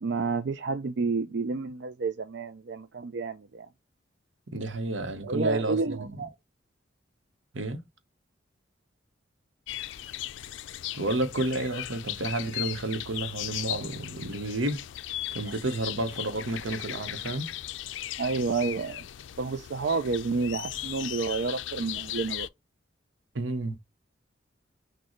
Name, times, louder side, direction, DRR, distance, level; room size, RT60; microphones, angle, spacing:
voice 1, 0.0-3.7 5.2-6.3 18.2-19.1 19.4-22.5, right 4 dB, 60° right, 0.5 m, -30 dB
voice 2, 4.5-6.2 7.5-7.8 10.9-14.8 15.3-17.5 23.3-23.8, right 2 dB, 90° right, 1.0 m, -31 dB
sound 1, 9.7-22.5, left 13 dB, 75° left, 0.4 m, -37 dB
6.3 x 2.3 x 3.0 m
head